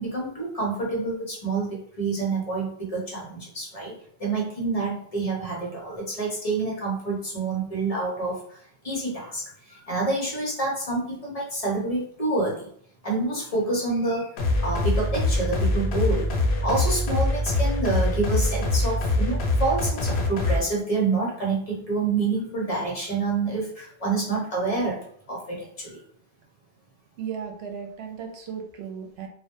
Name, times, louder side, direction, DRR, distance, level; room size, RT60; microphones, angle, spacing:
voice 1, 0.0-12.7 13.0-16.3 16.6-26.0, right 3 dB, 40° left, -3 dB, 0.7 m, -28 dB
sound 1, 14.4-20.6, left 2 dB, 85° left, 0.8 m, -24 dB
voice 2, 27.2-29.3, right 7 dB, 80° right, 3 dB, 0.8 m, -35 dB
2.1 x 2.1 x 2.9 m, 0.62 s
omnidirectional pair, 1.1 m